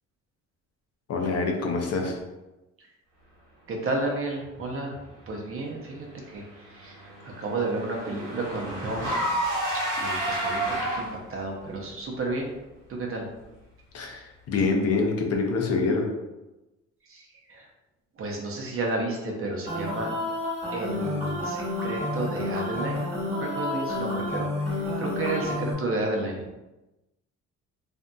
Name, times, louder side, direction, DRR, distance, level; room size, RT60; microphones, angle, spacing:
voice 1, 1.1-2.2 13.9-16.1, left 4 dB, 55° left, 2 dB, 0.6 m, -26 dB
voice 2, 3.7-5.0 5.3-9.2 10.0-12.5 12.9-13.3 17.0-17.7 18.2-20.1 20.7-26.6, right 2 dB, 45° right, 0 dB, 0.6 m, -32 dB
Car / Engine, 6.3-11.4, right 1 dB, 80° right, 0.9 m, -30 dB
sound 1, 19.7-25.7, left 2 dB, 20° right, 1.1 m, -30 dB
2.6 x 2.5 x 2.2 m, 1.0 s
cardioid pair, 90°, 30 cm